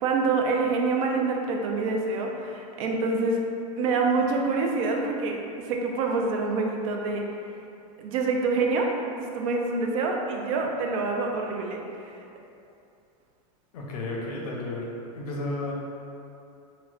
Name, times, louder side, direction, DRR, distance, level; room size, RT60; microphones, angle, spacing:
voice 1, 0.0-3.4 3.8-7.2 8.0-8.9 9.2-11.8, right 3 dB, 65° right, 1 dB, 0.5 m, -26 dB
voice 2, 13.7-14.9 15.1-15.7, left 2 dB, 85° left, -2 dB, 0.7 m, -32 dB
4.0 x 2.1 x 2.4 m, 2.7 s
supercardioid pair, 130°, 19 cm